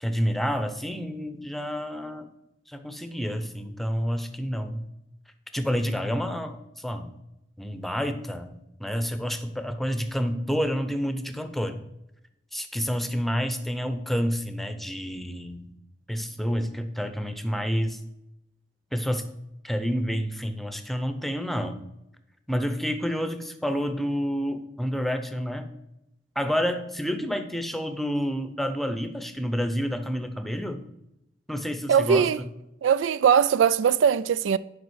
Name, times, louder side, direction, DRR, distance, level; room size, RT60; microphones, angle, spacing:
voice 1, 0.0-2.3 2.7-4.9 5.5-7.1 7.6-11.8 12.5-15.7 16.1-18.0 18.9-19.3 19.6-21.8 22.5-25.7 26.4-30.8 31.5-32.3, equal, ahead, 0.7 m, -29 dB
voice 2, 31.9-32.4 32.8-34.6, right 7 dB, 80° right, 0.3 m, -20 dB
9.6 x 5.1 x 6.3 m
head